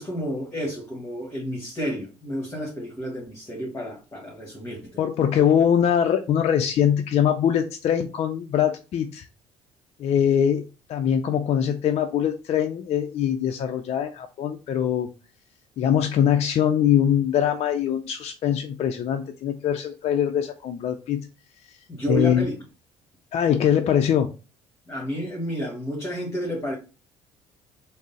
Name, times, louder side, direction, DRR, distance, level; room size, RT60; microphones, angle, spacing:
voice 1, 0.0-5.0 21.9-22.6 24.9-26.7, equal, 20° left, 1.3 m, -31 dB
voice 2, 5.0-9.3 10.0-15.1 15.8-21.2 22.1-22.4 23.3-24.3, left 9 dB, 50° left, 0.4 m, -22 dB
3.7 x 2.0 x 3.9 m
hypercardioid pair, 65°, 14 cm